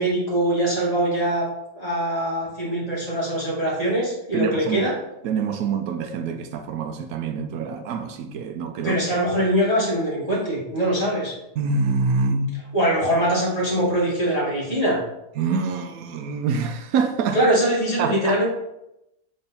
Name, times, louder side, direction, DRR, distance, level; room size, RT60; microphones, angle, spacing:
voice 1, 0.0-1.5 1.7-5.0 8.8-11.3 12.7-15.0 17.3-18.5, right 1 dB, 25° left, 2.1 m, -22 dB
voice 2, 4.3-4.9 5.2-9.0 11.6-12.6 15.4-17.4 18.0-18.5, right 5 dB, 75° right, 1.0 m, -25 dB
6.9 x 3.8 x 4.1 m
omnidirectional pair, 1.5 m